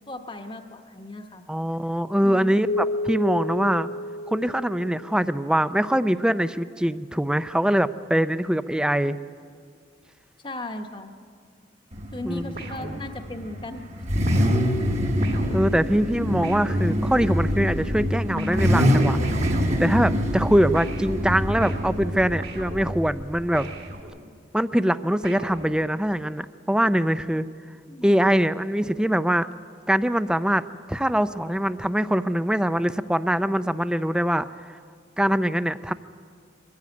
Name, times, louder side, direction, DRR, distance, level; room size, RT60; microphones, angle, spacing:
voice 1, 0.1-1.4 2.2-2.6 10.4-11.1 12.1-13.8 14.1-14.4 15.4-15.8 27.9-28.4, left 2 dB, 25° left, 6 dB, 1.1 m, -37 dB
voice 2, 1.5-3.9 4.3-9.2 12.2-13.0 15.5-19.2 19.8-23.7 24.5-27.5 28.0-29.5 29.9-34.5 35.2-35.9, equal, 5° right, 13 dB, 0.4 m, -23 dB
Keyboard (musical), 2.7-5.6, left 1 dB, 80° left, 1.0 m, -31 dB
Car / Idling / Accelerating revving vroom, 11.9-24.0, equal, 40° right, 1.5 m, -25 dB
sound 1, 12.6-13.6 14.3-17.4 18.4-20.5 20.7-24.5 25.2-26.2, right 2 dB, 55° right, 2.4 m, -40 dB
23.0 x 14.5 x 9.6 m, 2.2 s
head